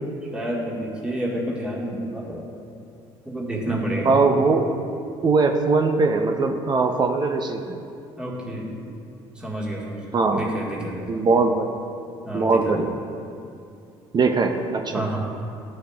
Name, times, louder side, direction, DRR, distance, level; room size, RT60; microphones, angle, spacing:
voice 1, 0.2-2.5 3.3-4.1 8.2-8.7 9.4-11.2 12.2-12.9 14.9-15.2, right 1 dB, 10° right, -4 dB, 1.6 m, -29 dB
voice 2, 4.0-4.7 5.2-7.8 10.1-10.4 11.1-11.8 12.3-12.9 14.1-15.0, right 4 dB, 35° right, 4 dB, 0.6 m, -20 dB
13.0 x 6.4 x 2.4 m, 2.5 s
supercardioid pair, 75°, 12 cm